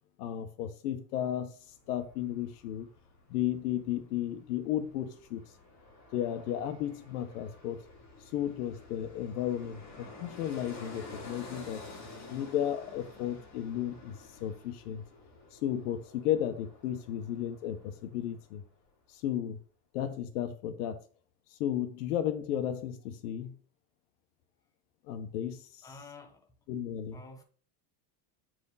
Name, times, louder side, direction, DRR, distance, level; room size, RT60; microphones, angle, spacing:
voice 1, 0.2-1.5 1.9-2.9 3.3-5.4 6.1-7.8 8.3-11.8 12.3-15.0 15.5-18.6 19.1-19.6 19.9-21.0 21.6-23.5 25.1-25.9 26.7-27.2, left 10 dB, 85° left, 1.3 m, -34 dB
Fixed-wing aircraft airplane, 1.6-18.6 18.9-19.0, left 2 dB, 35° left, 3.0 m, -51 dB
voice 2, 25.8-26.5 27.1-27.4, left 3 dB, 10° left, 1.0 m, -49 dB
8.7 x 4.8 x 4.1 m
supercardioid pair, 150°, 45 cm